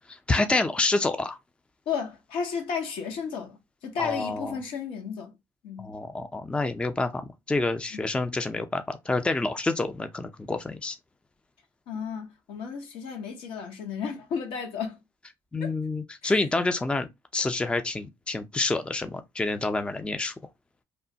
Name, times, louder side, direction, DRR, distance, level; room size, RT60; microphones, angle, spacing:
voice 1, 0.1-1.4 4.0-4.6 5.8-11.0 15.5-20.3, left 2 dB, 10° left, 0.4 m, -28 dB
voice 2, 1.9-5.3 5.6-5.9 7.9-8.0 11.9-15.0 15.6-15.7 16.2-16.4, left 6 dB, 70° left, 0.9 m, -33 dB
3.1 x 2.1 x 2.7 m
hypercardioid pair, 65°, 10 cm